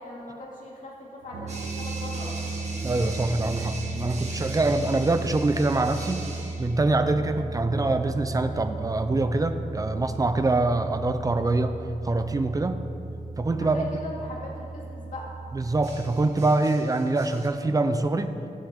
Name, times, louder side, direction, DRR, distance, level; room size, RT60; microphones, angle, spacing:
voice 1, 0.0-2.4 13.6-15.3, left 1 dB, 65° left, -5 dB, 2.2 m, -40 dB
sound 1, 1.2-16.0, right 3 dB, 70° right, 1.2 m, -36 dB
sound 2, 1.5-6.8 10.3-10.6 15.8-17.5, right 2 dB, 50° right, 2.1 m, -42 dB
voice 2, 2.8-6.3 6.6-11.8 12.0-12.8 13.4-14.0 15.5-18.4, right 2 dB, 25° right, 8 dB, 0.6 m, -24 dB
21.0 x 7.4 x 3.7 m, 2.8 s
wide cardioid pair, 150°, 15 cm